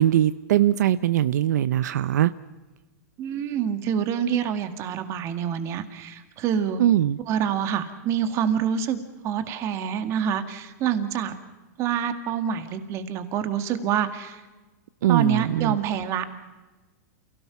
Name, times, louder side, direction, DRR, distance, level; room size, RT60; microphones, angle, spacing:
voice 1, 0.0-2.3 6.8-7.2 15.0-15.8, right 12 dB, 75° right, 15 dB, 0.6 m, -21 dB
voice 2, 3.2-6.8 7.3-9.0 9.2-11.3 11.8-14.4 15.1-16.4, right 8 dB, 30° right, 9 dB, 2.0 m, -26 dB
29.0 x 17.0 x 5.9 m, 1.2 s
supercardioid pair, 150°, 9 cm